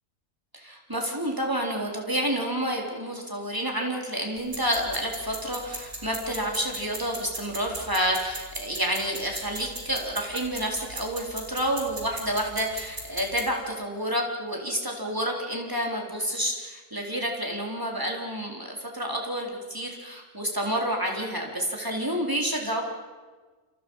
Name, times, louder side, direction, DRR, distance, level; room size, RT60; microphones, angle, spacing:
voice 1, 0.5-22.8, equal, 15° right, 0 dB, 4.0 m, -29 dB
sound 1, 4.4-13.4, right 1 dB, 75° right, 5.4 m, -39 dB
29.5 x 28.0 x 5.6 m, 1.4 s
omnidirectional pair, 1.3 m